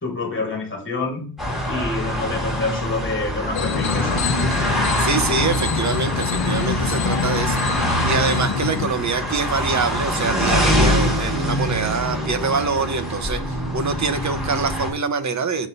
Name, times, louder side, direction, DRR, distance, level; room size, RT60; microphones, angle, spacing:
voice 1, 0.0-1.3 1.7-4.4, left 3 dB, 25° left, 1 dB, 3.0 m, -27 dB
sound 1, 1.4-14.9, equal, ahead, 3.7 m, -24 dB
sound 2, 3.5-8.9, left 7 dB, 70° left, 0.9 m, -25 dB
voice 2, 5.0-15.7, right 4 dB, 35° right, 9 dB, 0.9 m, -24 dB
8.4 x 5.5 x 5.4 m, 0.39 s
wide cardioid pair, 165°, 47 cm